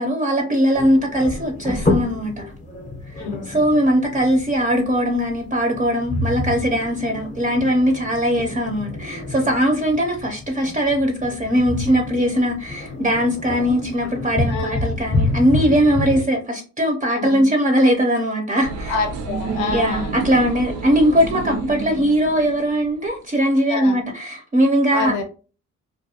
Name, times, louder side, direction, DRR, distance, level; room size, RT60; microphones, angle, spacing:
voice 1, 0.0-2.3 3.1-18.9 19.7-25.1, equal, 25° right, 0.5 m, -20 dB
sound 1, 0.7-16.2, left 2 dB, 25° left, 0.6 m, -28 dB
voice 2, 3.1-3.5 14.5-14.8 17.1-17.5 18.9-20.1 21.4-21.6 23.7-24.0 24.9-25.2, left 4 dB, 90° left, 0.7 m, -27 dB
sound 2, 18.6-23.1, right 5 dB, 85° right, 0.6 m, -30 dB
2.4 x 2.2 x 2.7 m
cardioid pair, 90°, 30 cm